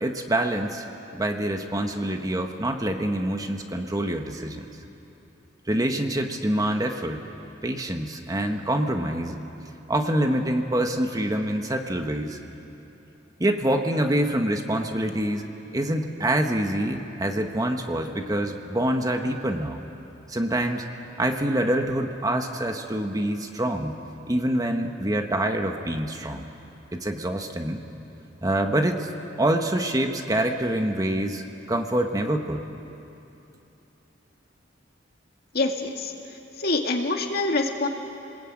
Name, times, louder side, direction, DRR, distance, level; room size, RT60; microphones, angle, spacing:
voice 1, 0.0-0.8 1.1-4.6 5.7-7.2 7.6-9.4 9.9-12.4 13.4-15.4 15.7-19.8 20.3-20.8 21.2-24.0 24.3-26.4 26.9-27.8 28.4-29.1 29.4-32.6, right 1 dB, 20° right, 5 dB, 1.3 m, -26 dB
voice 2, 35.5-36.1 36.6-37.9, left 2 dB, 55° left, 3 dB, 2.2 m, -25 dB
30.0 x 21.0 x 8.8 m, 2.9 s
head